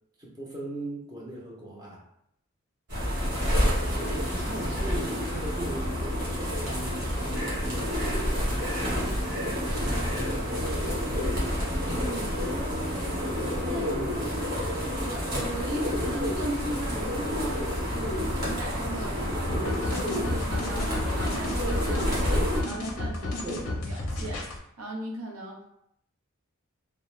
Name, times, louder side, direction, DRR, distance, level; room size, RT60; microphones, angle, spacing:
voice 1, 0.2-2.1 3.5-8.0 8.4-9.3 10.1-11.7 13.8-14.4 23.4-23.7, right 1 dB, 20° right, -4 dB, 0.6 m, -39 dB
pigeons coo, 2.9-22.6, equal, 50° right, 1.1 m, -29 dB
voice 2, 11.9-12.4 13.6-13.9 14.2-14.5 15.0-23.6 23.9-25.6, right 1 dB, 75° right, -2 dB, 0.6 m, -38 dB
sound 1, 19.5-24.6, left 2 dB, 60° left, 0.5 m, -33 dB
2.3 x 2.1 x 3.1 m, 0.74 s
head